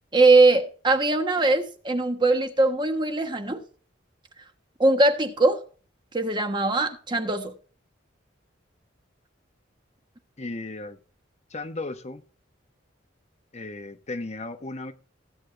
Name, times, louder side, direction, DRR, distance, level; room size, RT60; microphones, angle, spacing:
voice 1, 0.1-3.6 4.8-5.6 6.1-7.5, right 2 dB, 25° right, 1.2 m, -21 dB
voice 2, 10.4-11.0 11.5-12.2 13.5-14.9, left 2 dB, 35° left, 0.9 m, -35 dB
17.0 x 8.5 x 3.2 m
head